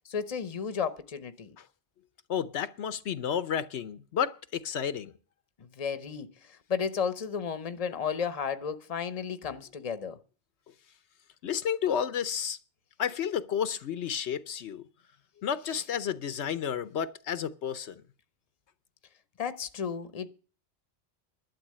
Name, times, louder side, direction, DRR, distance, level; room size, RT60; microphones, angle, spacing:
voice 1, 0.1-1.6 5.6-6.3 6.7-10.2 19.4-20.3, left 6 dB, 35° left, 0.9 m, -33 dB
voice 2, 2.3-5.1 11.4-12.6 13.0-14.8 15.4-18.0, left 8 dB, 85° left, 1.1 m, -31 dB
12.0 x 7.4 x 7.5 m
omnidirectional pair, 1.1 m